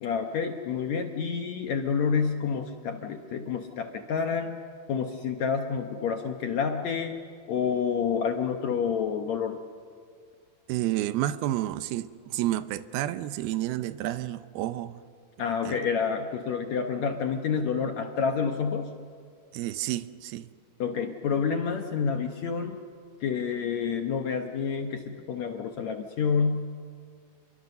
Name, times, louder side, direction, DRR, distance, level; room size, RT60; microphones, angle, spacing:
voice 1, 0.0-4.6 4.9-7.2 7.5-9.6 15.4-18.9 20.8-22.8 23.2-26.7, left 6 dB, 70° left, 1.8 m, -28 dB
voice 2, 10.7-15.0 15.6-15.8 19.5-20.5, right 14 dB, 80° right, 2.6 m, -30 dB
29.0 x 23.0 x 6.7 m
omnidirectional pair, 4.4 m